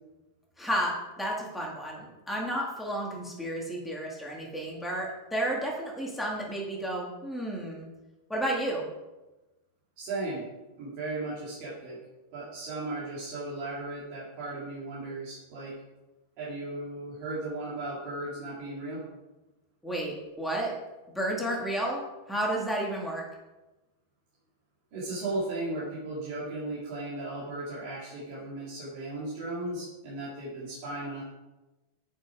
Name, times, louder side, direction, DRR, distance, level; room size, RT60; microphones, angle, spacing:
voice 1, 0.6-7.9 8.3-8.8 19.8-20.7 21.1-22.0 22.3-23.2, right 1 dB, ahead, -2 dB, 0.4 m, -32 dB
voice 2, 10.0-10.5 10.8-12.0 12.3-15.7 16.4-19.0 24.9-31.2, right 2 dB, 80° right, -8 dB, 4.0 m, -36 dB
14.0 x 5.7 x 4.8 m, 1.1 s
omnidirectional pair, 4.0 m